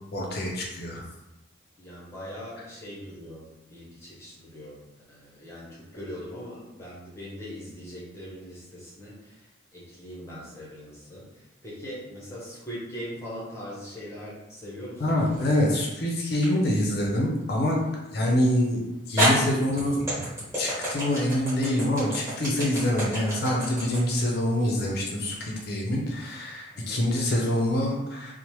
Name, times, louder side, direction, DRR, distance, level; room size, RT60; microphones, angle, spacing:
voice 1, 0.1-1.0 15.0-17.8 18.1-20.0 20.6-28.3, left 1 dB, 50° left, -1 dB, 0.5 m, -25 dB
voice 2, 1.8-4.8 5.1-9.4 9.7-15.3 26.7-27.0, equal, 15° left, -6 dB, 0.6 m, -41 dB
sound 1, 15.1-15.7 16.4-16.5 18.4-18.5 19.2-25.4, equal, 15° right, 1.2 m, -29 dB
2.9 x 2.0 x 3.0 m, 0.95 s
head